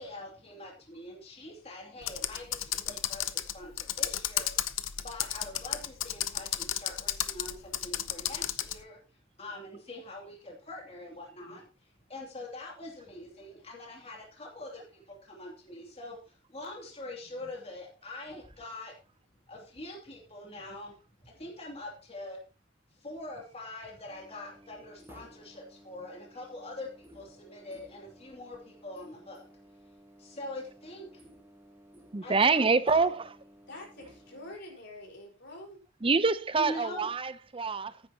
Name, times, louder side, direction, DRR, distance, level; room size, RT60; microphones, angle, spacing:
voice 1, 0.0-9.0 9.4-11.7 12.1-16.2 16.5-18.9 19.5-20.9 21.2-22.4 23.0-29.4 30.2-31.1 32.2-33.1 36.6-37.1, left 1 dB, 30° left, 2.6 m, -44 dB
Computer keyboard, 2.0-8.8, left 12 dB, 80° left, 0.8 m, -33 dB
sound 1, 24.1-34.6, equal, 10° right, 1.2 m, -56 dB
voice 2, 32.1-33.4 36.0-38.0, right 4 dB, 25° right, 0.6 m, -26 dB
voice 3, 33.7-35.8, left 1 dB, 60° left, 4.6 m, -46 dB
14.0 x 9.8 x 2.9 m
head